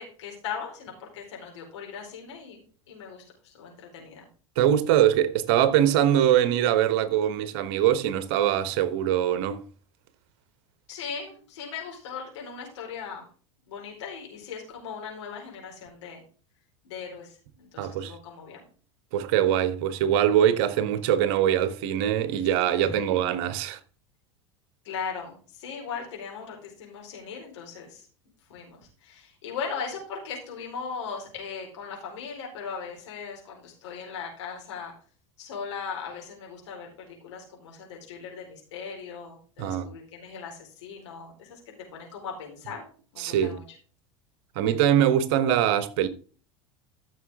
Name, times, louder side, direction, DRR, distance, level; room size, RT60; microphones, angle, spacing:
voice 1, 0.0-4.3 10.9-13.3 13.7-16.2 16.8-18.6 22.8-23.3 24.8-28.1 28.5-34.9 35.4-42.8 43.1-43.6, left 6 dB, 65° left, 4.5 m, -38 dB
voice 2, 4.6-9.6 17.8-18.1 19.1-23.8 39.6-39.9 43.2-43.6 44.5-46.1, right 10 dB, 55° right, 1.2 m, -23 dB
14.0 x 6.6 x 3.6 m
figure-of-eight pair, 80°, 16 cm